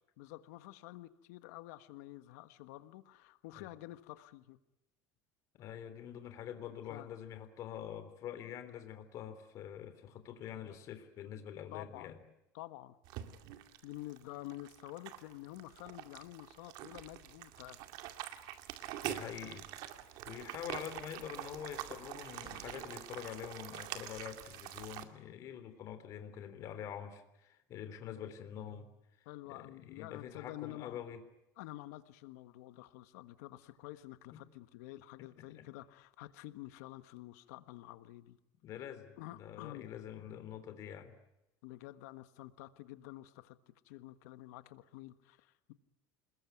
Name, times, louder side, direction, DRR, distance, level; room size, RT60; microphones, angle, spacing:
voice 1, 0.2-4.6 6.9-7.1 7.7-7.8 11.7-12.1 12.5-12.9 13.8-17.8 29.2-31.0 31.6-38.4 39.2-39.9 41.6-43.6 43.8-45.7, left 16 dB, 80° left, 12 dB, 1.5 m, -49 dB
voice 2, 5.5-12.2 19.0-19.7 20.2-28.9 29.5-31.2 35.6-35.7 38.6-41.1, left 9 dB, 40° left, 9 dB, 3.3 m, -46 dB
sound 1, 13.0-25.0, right 12 dB, 55° right, 2.3 m, -45 dB
27.0 x 21.0 x 9.4 m, 0.90 s
cardioid pair, 165°, 9 cm